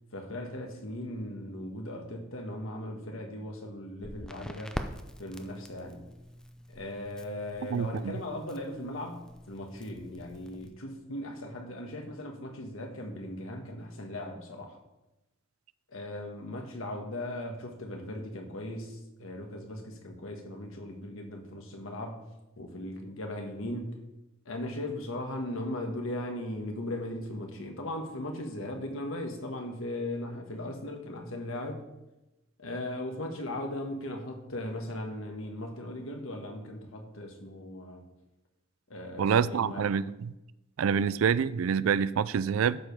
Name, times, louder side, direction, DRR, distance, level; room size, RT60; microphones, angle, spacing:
voice 1, 0.1-4.8 5.2-6.1 6.7-14.8 15.9-22.3 22.6-24.0 24.4-31.8 32.6-38.1 38.9-39.9, left 1 dB, 70° left, 1.5 m, -38 dB
Crackle, 4.0-10.7, equal, 5° left, 0.5 m, -44 dB
voice 2, 7.7-8.2 39.2-40.3 40.8-42.8, right 7 dB, 75° right, 0.4 m, -27 dB
12.5 x 4.9 x 5.3 m
head